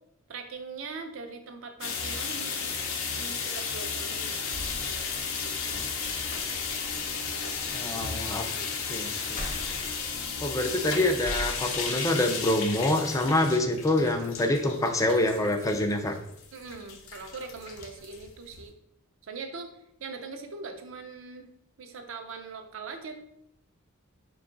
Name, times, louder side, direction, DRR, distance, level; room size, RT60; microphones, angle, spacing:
voice 1, 0.3-2.8 3.1-4.5 5.3-5.8 7.3-8.0 8.4-8.8 16.5-18.7 19.2-19.7 20.0-21.5 21.8-23.1, right 4 dB, 70° right, 5 dB, 0.5 m, -41 dB
sound 1, 1.8-18.7, left 5 dB, 75° left, 0.6 m, -34 dB
sound 2, 4.5-12.2 12.6-13.4, equal, 45° left, 1.0 m, -44 dB
voice 2, 7.7-8.4 8.9-9.4 10.4-16.1, left 1 dB, 15° left, 4 dB, 0.4 m, -26 dB
4.5 x 2.3 x 3.7 m, 0.75 s
head